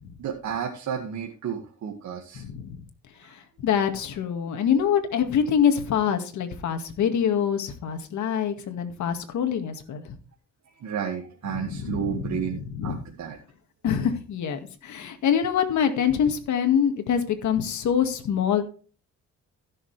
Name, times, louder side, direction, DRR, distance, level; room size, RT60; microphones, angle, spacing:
voice 1, 0.2-2.4 3.2-3.3 10.8-13.4, right 8 dB, 70° right, 1 dB, 1.9 m, -32 dB
voice 2, 2.3-2.8 3.2-10.0 11.5-13.0 13.8-18.6, left 8 dB, 70° left, 7 dB, 2.0 m, -25 dB
16.0 x 6.7 x 3.3 m, 0.37 s
cardioid pair, 90°, 30 cm